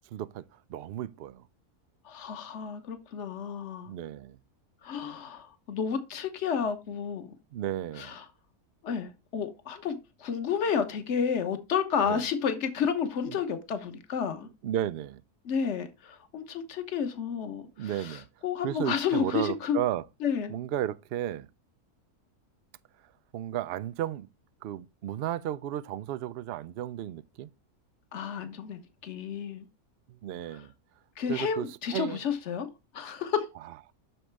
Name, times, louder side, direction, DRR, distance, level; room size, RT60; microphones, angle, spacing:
voice 1, 0.1-0.4 0.7-1.4 3.9-4.4 7.5-8.2 12.0-12.2 13.2-13.4 14.6-15.2 17.8-18.3 18.6-20.0 20.5-21.5 23.3-24.3 24.6-27.5 30.1-30.7 31.3-32.2, right 12 dB, 85° right, 0.5 m, -33 dB
voice 2, 2.1-3.9 4.8-7.3 8.0-8.2 8.8-14.5 15.4-19.8 20.2-20.5 28.1-29.7 31.2-32.7 32.9-33.4, left 7 dB, 50° left, 1.3 m, -31 dB
7.7 x 6.3 x 3.3 m
omnidirectional pair, 1.6 m